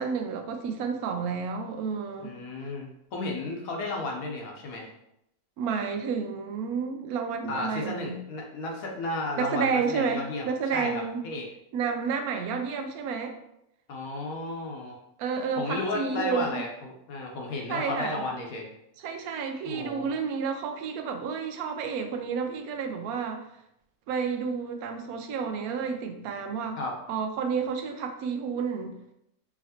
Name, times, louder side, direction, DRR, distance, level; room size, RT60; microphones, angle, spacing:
voice 1, 0.0-2.3 5.6-8.2 9.4-11.3 11.7-13.3 15.2-16.6 17.7-18.2 19.0-23.4 24.1-26.8 27.1-28.9, right 6 dB, 80° right, 5 dB, 1.1 m, -30 dB
voice 2, 2.2-4.9 7.5-11.5 13.9-15.0 15.6-18.7 19.2-19.3 19.7-20.1 26.8-26.9, left 2 dB, 70° left, 0 dB, 1.2 m, -33 dB
4.8 x 3.0 x 2.8 m, 0.80 s
omnidirectional pair, 1.6 m